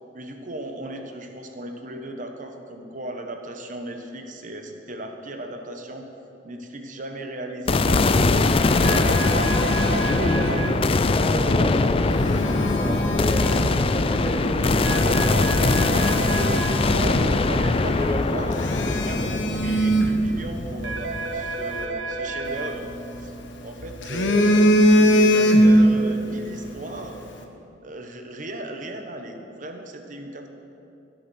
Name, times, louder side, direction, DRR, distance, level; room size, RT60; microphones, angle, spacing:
voice 1, 0.1-6.1 6.4-9.3 16.9-27.2 27.8-30.5, right 1 dB, 45° right, 5 dB, 1.2 m, -36 dB
sound 1, 7.7-22.0, left 3 dB, 30° left, 0.4 m, -22 dB
Telephone, 8.1-10.7 11.9-13.8 14.4-14.6 15.1-15.2 15.6-17.7 17.9-18.0 18.5-20.9 22.5-23.4 23.8-26.0 26.3-26.5, equal, 85° left, 1.2 m, -22 dB
sound 2, 8.8-10.7 14.8-16.7 20.8-22.7, right 3 dB, 85° right, 1.4 m, -30 dB
voice 2, 10.1-13.5 13.9-15.4 16.3-17.4 17.6-18.2, equal, 15° left, -2 dB, 2.0 m, -30 dB
14.5 x 8.4 x 6.3 m, 2.8 s
head